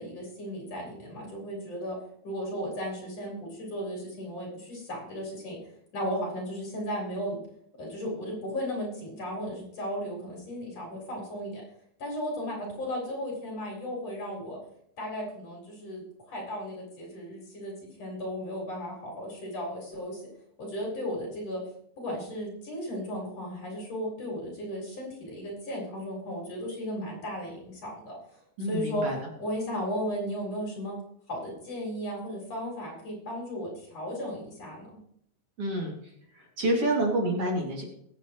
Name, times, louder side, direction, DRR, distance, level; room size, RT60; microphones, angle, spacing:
voice 1, 0.0-2.0 2.2-5.6 5.9-7.4 7.8-11.6 12.0-14.6 15.0-20.2 20.6-21.6 22.0-28.2 28.7-29.0 29.4-31.0 31.3-34.9, equal, 55° left, -2 dB, 5.7 m, -35 dB
voice 2, 28.6-29.2 35.6-35.9 36.3-37.8, right 1 dB, 50° right, -1 dB, 3.3 m, -28 dB
22.5 x 8.9 x 3.1 m, 0.70 s
omnidirectional pair, 3.5 m